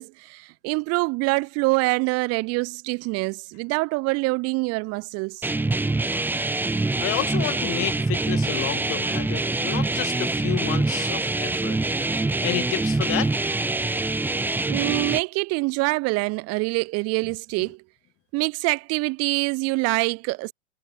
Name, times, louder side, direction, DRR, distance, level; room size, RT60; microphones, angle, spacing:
voice 1, 0.0-5.5 14.7-17.8 18.3-20.5, right 26 dB, 45° right, 2.5 m, -25 dB
sound 1, 5.4-15.2, right 2 dB, 5° right, 1.0 m, -25 dB
voice 2, 7.0-11.8 12.4-13.3, left 17 dB, 40° left, 6.7 m, -30 dB
hypercardioid pair, 120°, 34 cm